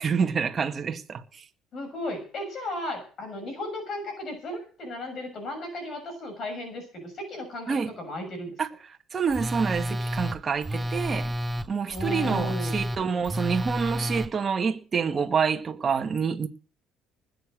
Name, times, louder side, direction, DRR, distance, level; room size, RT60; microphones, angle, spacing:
voice 1, 0.0-1.4 7.7-7.9 8.6-8.7 9.1-11.3 11.7-16.5, right 6 dB, 30° right, 1.9 m, -27 dB
voice 2, 1.7-8.5 11.9-12.8, left 1 dB, 45° left, 6.6 m, -35 dB
Telephone, 9.3-14.3, equal, 10° right, 0.7 m, -30 dB
20.0 x 8.1 x 6.3 m
cardioid pair, 115°, 0 cm